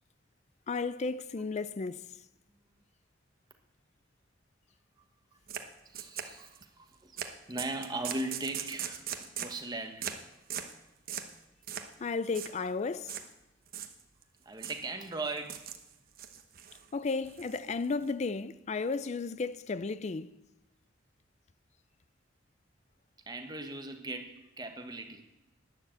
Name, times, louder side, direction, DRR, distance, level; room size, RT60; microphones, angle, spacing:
voice 1, 0.7-2.1 12.0-13.2 16.9-20.3, left 4 dB, 35° left, 0.4 m, -33 dB
sound 1, 5.5-5.6 5.9-6.6 7.2-7.3 7.6-9.6 10.0-10.2 10.5-10.7 11.1-11.3 11.7-11.9 12.2-12.5 13.1-13.3 13.7-14.2 14.6-14.8 15.4-15.8 16.2-16.8 17.2-18.1, right 9 dB, 50° right, 1.1 m, -39 dB
voice 2, 5.8-10.2 14.4-15.6 23.3-25.2, right 2 dB, 20° right, 1.2 m, -39 dB
12.0 x 10.0 x 7.7 m
head